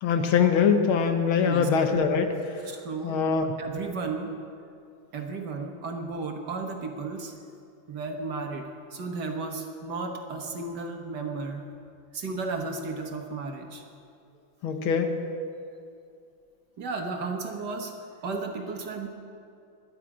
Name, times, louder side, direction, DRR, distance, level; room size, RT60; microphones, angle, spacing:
voice 1, 0.0-2.3 3.0-3.5 14.6-15.1, left 6 dB, 80° left, 6 dB, 1.9 m, -23 dB
voice 2, 2.7-3.2 3.6-4.3 5.1-7.3 7.9-11.6 12.1-13.8 16.8-17.9 18.2-19.1, right 3 dB, 55° right, 3 dB, 1.7 m, -34 dB
21.0 x 10.0 x 4.9 m, 2.4 s
omnidirectional pair, 2.3 m